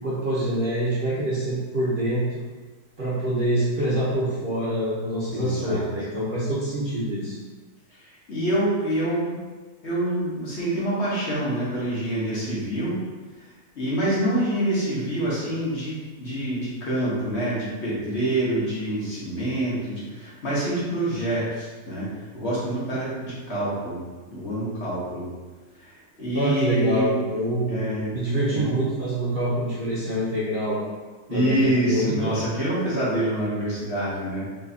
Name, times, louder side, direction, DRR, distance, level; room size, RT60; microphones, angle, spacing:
voice 1, 0.0-2.2 3.0-7.4 26.3-27.8 28.1-30.8 31.3-32.4, right 1 dB, 40° right, -9 dB, 0.9 m, -25 dB
voice 2, 5.3-5.8 7.9-8.0 8.3-9.4 9.8-12.9 13.8-22.1 22.3-24.0 24.3-25.3 25.8-27.2 27.6-28.1 28.4-28.8 31.3-34.5, right 1 dB, 45° left, -8 dB, 1.3 m, -26 dB
4.5 x 3.3 x 2.7 m, 1.3 s
omnidirectional pair, 1.7 m